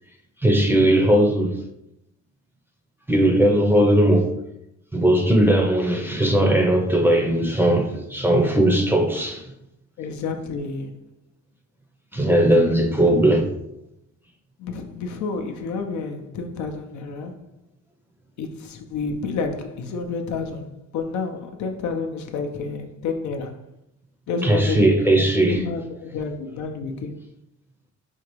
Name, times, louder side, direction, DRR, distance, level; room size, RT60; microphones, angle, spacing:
voice 1, 0.4-1.6 3.1-4.3 4.9-9.4 12.1-13.5 24.4-25.6, right 1 dB, 5° right, 0.6 m, -18 dB
voice 2, 10.0-10.9 12.3-12.7 13.1-13.2 14.6-17.4 18.4-23.6 24.3-24.9 25.5-27.2, left 4 dB, 70° left, 0.6 m, -30 dB
4.3 x 2.4 x 3.0 m
cardioid pair, 90°, 30 cm